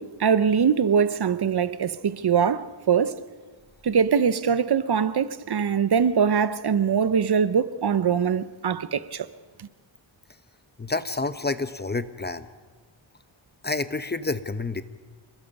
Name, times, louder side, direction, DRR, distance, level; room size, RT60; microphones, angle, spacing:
voice 1, 0.0-3.2 3.8-9.3, right 7 dB, 55° right, 0.9 m, -22 dB
voice 2, 10.8-12.5 13.6-14.8, left 3 dB, 20° left, 0.9 m, -29 dB
28.5 x 20.5 x 5.4 m
wide cardioid pair, 90°, 48 cm